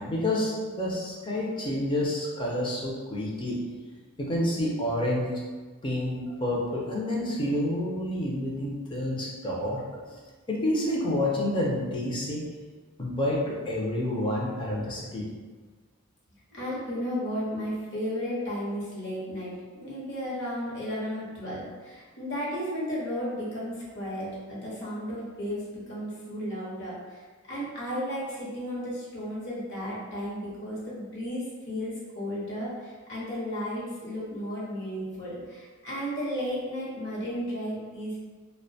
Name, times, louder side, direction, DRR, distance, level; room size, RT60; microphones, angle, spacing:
voice 1, 0.0-3.6 4.2-5.3 5.8-9.8 10.1-10.2 10.5-12.4 13.0-15.3, left 1 dB, 20° left, -4 dB, 0.4 m, -29 dB
voice 2, 16.5-27.2 27.5-38.2, equal, 55° left, -6 dB, 0.8 m, -34 dB
2.4 x 2.1 x 2.6 m, 1.4 s
head